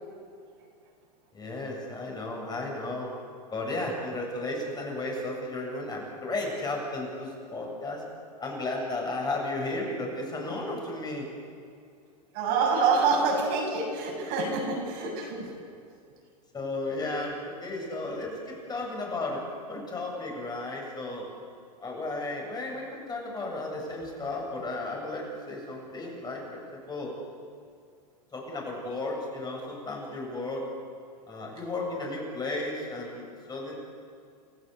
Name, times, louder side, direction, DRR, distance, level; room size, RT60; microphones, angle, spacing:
voice 1, 1.3-3.1 3.5-8.0 8.4-11.3 16.5-19.4 19.7-21.3 21.8-27.1 28.3-30.7 31.3-33.7, left 2 dB, 20° left, -1 dB, 7.8 m, -34 dB
voice 2, 12.3-15.5, right 4 dB, 55° right, 1 dB, 7.4 m, -26 dB
29.0 x 15.0 x 8.5 m, 2.3 s
hypercardioid pair, 105°, 21 cm